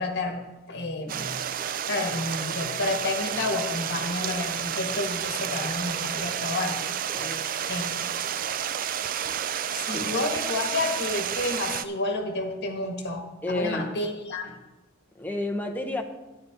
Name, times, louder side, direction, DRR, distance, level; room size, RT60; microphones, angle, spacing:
voice 1, 0.0-1.4 1.9-6.8 7.7-7.9 9.7-14.6, left 2 dB, 55° left, 3 dB, 1.5 m, -30 dB
Stream, 1.1-11.8, right 9 dB, 45° right, 0.4 m, -30 dB
voice 2, 7.1-7.5 9.9-10.1 13.4-13.9 15.1-16.0, left 2 dB, 10° left, 2 dB, 0.9 m, -31 dB
12.0 x 9.5 x 3.6 m, 1.1 s
head